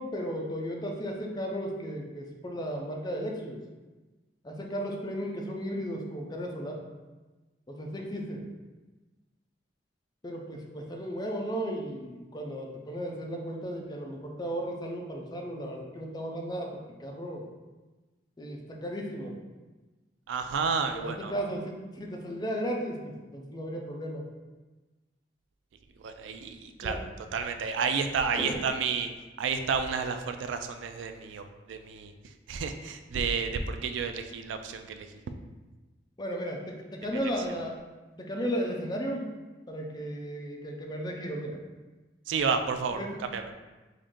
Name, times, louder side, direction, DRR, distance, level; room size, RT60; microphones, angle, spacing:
voice 1, 0.0-3.6 4.4-6.8 7.7-8.4 10.2-17.4 18.4-19.4 20.9-24.2 26.8-27.0 28.4-28.6 36.2-37.7 38.1-39.3 39.7-41.6 42.9-43.2, equal, 25° left, 0 dB, 0.5 m, -35 dB
voice 2, 20.3-21.3 26.0-29.1 29.4-32.1 32.5-35.1 37.1-37.2 42.3-43.5, right 5 dB, 90° right, 7 dB, 0.3 m, -31 dB
3.6 x 2.5 x 3.6 m, 1.2 s
head